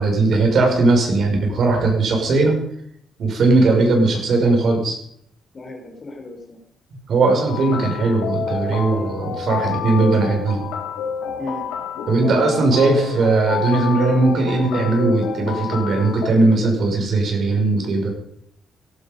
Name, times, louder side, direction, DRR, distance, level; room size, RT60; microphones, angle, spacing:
voice 1, 0.0-2.6 3.2-5.0 7.1-10.7 12.1-18.1, right 3 dB, 60° right, 2 dB, 6.1 m, -18 dB
voice 2, 5.5-6.6 11.4-11.7 11.9-12.8, left 1 dB, 35° left, 3 dB, 4.2 m, -35 dB
sound 1, 7.5-16.3, left 6 dB, 90° left, 2.8 m, -28 dB
17.5 x 12.5 x 5.4 m, 0.69 s
cardioid pair, 90°, 0 cm